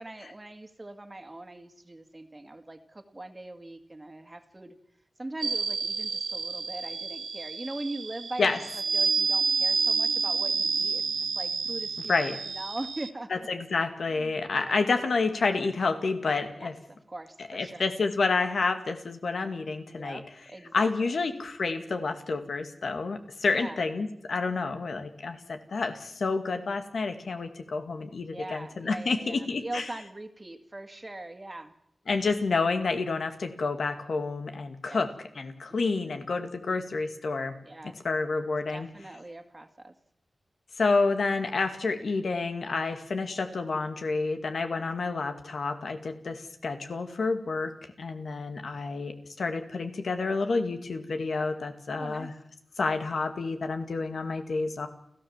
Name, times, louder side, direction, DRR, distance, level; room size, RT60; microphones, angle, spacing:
voice 1, 0.0-4.7 5.2-13.5 14.2-14.9 16.5-17.8 19.8-21.2 23.5-23.8 28.3-31.7 34.8-35.0 35.7-36.2 37.6-38.0 38.7-39.9 44.7-44.9 51.9-52.3, right 2 dB, 25° right, 7 dB, 2.0 m, -41 dB
sound 1, 5.4-13.1, right 5 dB, 80° right, 1.1 m, -29 dB
voice 2, 13.3-16.7 17.5-20.2 20.7-29.8 32.1-37.6 37.8-38.9 40.8-47.7 48.0-52.3 52.8-54.9, left 4 dB, 80° left, 7 dB, 2.3 m, -29 dB
30.0 x 14.5 x 7.4 m, 0.75 s
wide cardioid pair, 95°, 0 cm